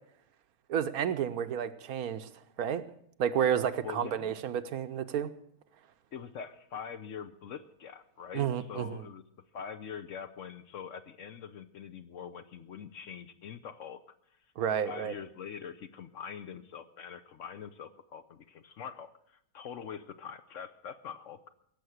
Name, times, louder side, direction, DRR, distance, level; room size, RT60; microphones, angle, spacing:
voice 1, 0.7-2.3 2.6-2.8 3.2-5.3 8.3-9.0 14.6-15.1, right 8 dB, 70° right, 11 dB, 1.2 m, -31 dB
voice 2, 3.8-4.4 6.1-9.2 9.5-14.0 14.8-21.4, left 7 dB, 60° left, 11 dB, 1.0 m, -44 dB
17.0 x 7.2 x 7.9 m, 0.70 s
omnidirectional pair, 1.6 m